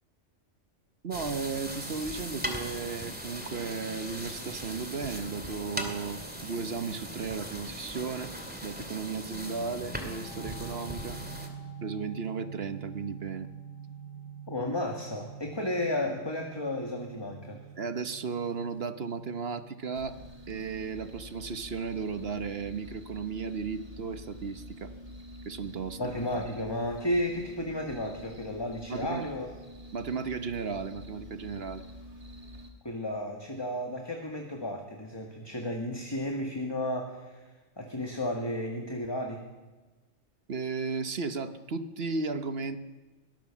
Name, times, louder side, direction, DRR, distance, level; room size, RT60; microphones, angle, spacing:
voice 1, 1.0-8.3 8.6-11.2 11.8-13.5 17.8-20.2 20.5-24.9 25.5-26.0 28.9-29.3 29.9-31.8 40.5-42.8, right 5 dB, 55° right, 10 dB, 1.2 m, -35 dB
sound 1, 1.1-11.5, equal, 5° right, 2.4 m, -39 dB
sound 2, 9.3-21.9, right 6 dB, 80° right, 3.2 m, -46 dB
voice 2, 14.5-17.6 26.0-29.5 32.8-37.5 37.8-39.5, left 1 dB, 20° left, 2 dB, 1.9 m, -33 dB
sound 3, 19.9-32.7, equal, 30° right, 2.5 m, -47 dB
22.5 x 18.5 x 7.3 m, 1.2 s
omnidirectional pair, 1.3 m